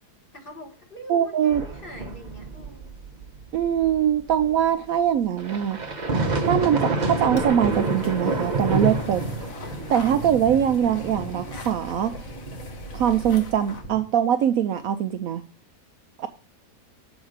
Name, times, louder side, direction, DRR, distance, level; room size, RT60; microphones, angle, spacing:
voice 1, 0.3-2.8, left 1 dB, 35° left, 1 dB, 1.7 m, -43 dB
voice 2, 1.1-1.6 3.5-5.8 6.4-9.2 9.9-12.2 12.9-15.4 16.2-16.3, right 9 dB, 70° right, 8 dB, 0.9 m, -22 dB
sound 1, 1.5-4.6 5.4-14.0, right 3 dB, 35° right, 0.9 m, -29 dB
sound 2, 7.2-13.9, left 1 dB, 55° left, 1.4 m, -39 dB
7.2 x 4.7 x 6.5 m, 0.37 s
omnidirectional pair, 1.7 m